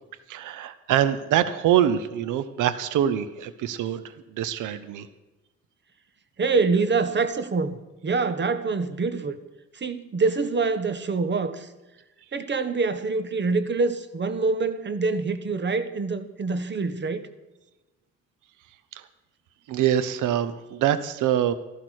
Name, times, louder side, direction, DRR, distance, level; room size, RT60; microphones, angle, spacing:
voice 1, 0.3-4.0 4.3-5.1 18.9-19.0 19.7-21.5, right 10 dB, 85° right, 0.8 m, -24 dB
voice 2, 6.4-9.4 9.7-11.7 12.3-17.3, right 4 dB, 35° right, 1.2 m, -25 dB
13.5 x 12.0 x 6.4 m
cardioid pair, 90°, 30 cm